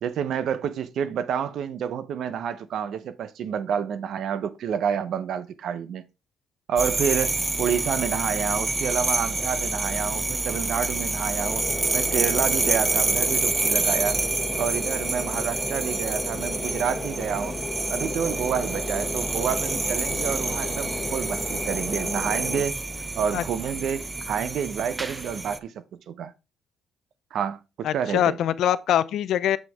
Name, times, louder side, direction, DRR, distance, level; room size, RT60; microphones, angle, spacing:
voice 1, 0.0-6.0 6.7-11.6 11.9-14.2 14.6-17.6 17.9-22.8 23.2-26.3 27.3-28.4, right 8 dB, 75° right, 0.8 m, -29 dB
sound 1, 6.8-25.6, right 2 dB, 20° right, 0.6 m, -27 dB
sound 2, 11.4-22.7, left 3 dB, 20° left, 1.3 m, -35 dB
voice 2, 27.8-29.6, left 11 dB, 80° left, 0.5 m, -23 dB
7.6 x 6.3 x 3.5 m
cardioid pair, 85°, 0 cm